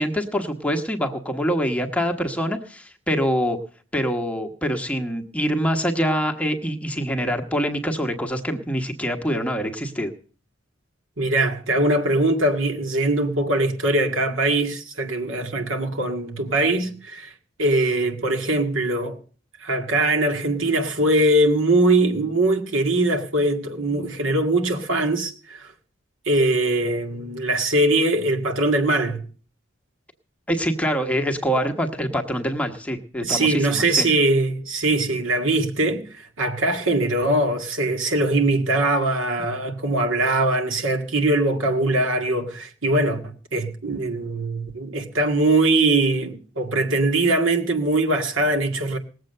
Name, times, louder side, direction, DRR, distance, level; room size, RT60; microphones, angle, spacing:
voice 1, 0.0-3.6 3.9-10.1 30.5-34.0, equal, 5° left, 1.1 m, -25 dB
voice 2, 11.2-17.3 17.6-19.2 19.6-25.7 26.3-29.3 33.2-43.2 43.5-49.0, right 2 dB, 75° right, 2.0 m, -21 dB
19.0 x 7.7 x 6.5 m
head